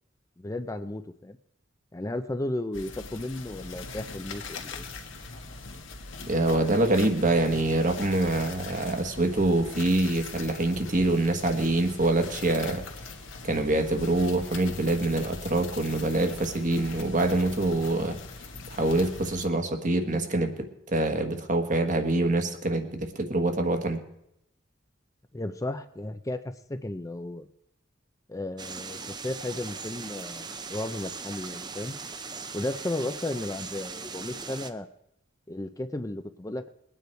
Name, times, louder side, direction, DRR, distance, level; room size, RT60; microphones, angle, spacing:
voice 1, 0.4-1.4 1.9-4.9 25.3-27.5 28.3-31.9 32.5-34.9 35.5-36.7, left 1 dB, 15° left, 8 dB, 0.6 m, -34 dB
sound 1, 2.7-19.5, left 3 dB, 80° left, 1.6 m, -41 dB
voice 2, 6.3-12.8 13.4-18.2 18.7-24.0, right 2 dB, 40° right, 6 dB, 1.4 m, -25 dB
sound 2, 28.6-34.7, right 4 dB, 20° right, 0.7 m, -39 dB
21.5 x 9.4 x 4.6 m, 0.80 s
head